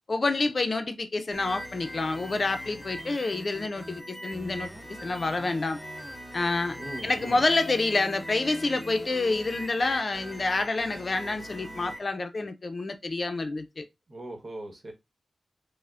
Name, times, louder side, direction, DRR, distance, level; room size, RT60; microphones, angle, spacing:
voice 1, 0.1-4.7 5.0-5.8 6.3-6.8 7.0-13.9, left 3 dB, 55° left, 0.5 m, -28 dB
sound 1, 1.3-12.0, equal, 5° left, 1.2 m, -41 dB
voice 2, 6.8-7.4 14.1-14.9, right 1 dB, 55° right, 1.1 m, -39 dB
5.4 x 2.1 x 2.4 m
wide cardioid pair, 65°, 0 cm